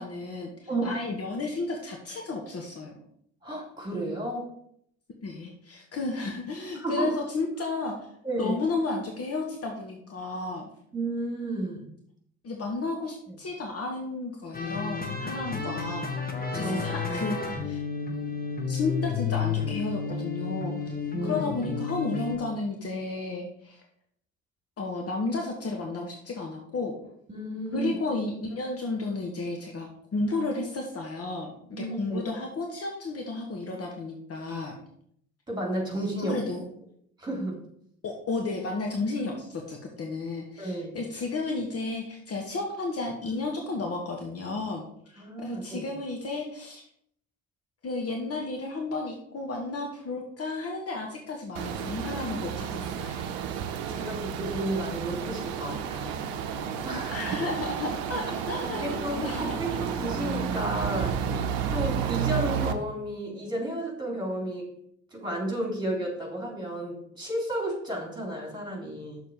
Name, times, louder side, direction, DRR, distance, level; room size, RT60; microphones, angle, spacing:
voice 1, 0.0-2.9 5.2-8.1 8.4-10.7 12.4-16.2 16.6-17.8 18.7-20.9 21.2-23.8 24.8-26.9 27.7-34.7 36.2-36.6 38.0-44.8 45.1-46.8 47.8-53.4 57.1-59.6, left 3 dB, 40° left, 1 dB, 1.2 m, -33 dB
voice 2, 0.7-1.0 3.4-4.5 6.8-7.1 8.2-8.6 10.9-11.9 16.5-16.9 21.1-21.5 27.3-27.9 31.7-32.3 35.5-36.4 37.2-37.6 40.6-41.0 45.2-45.8 53.9-56.2 56.8-57.2 58.8-61.2 61.7-64.7 65.1-69.2, right 1 dB, 10° right, -1 dB, 3.5 m, -32 dB
sound 1, 14.5-22.4, left 5 dB, 25° left, 1.4 m, -31 dB
sound 2, 51.5-62.7, right 8 dB, 65° right, 0.8 m, -31 dB
6.6 x 4.2 x 6.6 m, 0.68 s
figure-of-eight pair, 50°, 38 cm